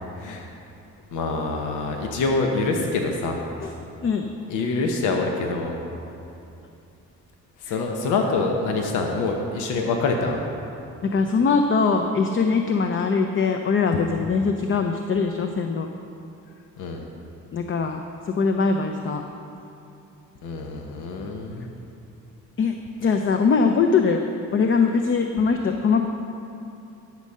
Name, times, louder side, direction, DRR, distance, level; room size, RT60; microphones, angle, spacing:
voice 1, 0.2-0.5 1.1-3.4 4.5-5.8 7.6-10.4 16.8-17.0 20.4-21.7, left 3 dB, 90° left, 2 dB, 1.0 m, -25 dB
voice 2, 4.0-4.3 11.0-15.9 17.5-18.0 18.3-19.2 22.6-24.2 24.5-26.0, left 5 dB, 40° left, 5 dB, 0.7 m, -22 dB
12.0 x 6.3 x 5.5 m, 2.8 s
cardioid pair, 90°, 30 cm